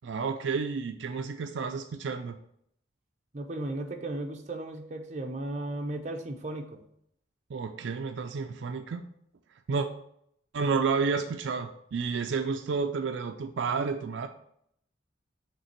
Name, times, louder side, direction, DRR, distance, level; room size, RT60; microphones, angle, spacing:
voice 1, 0.0-2.4 7.5-9.1 9.7-9.9 10.5-14.3, right 5 dB, 75° right, 7 dB, 0.4 m, -30 dB
voice 2, 3.3-6.8, right 1 dB, 35° right, 3 dB, 0.7 m, -35 dB
5.6 x 3.4 x 5.7 m, 0.72 s
head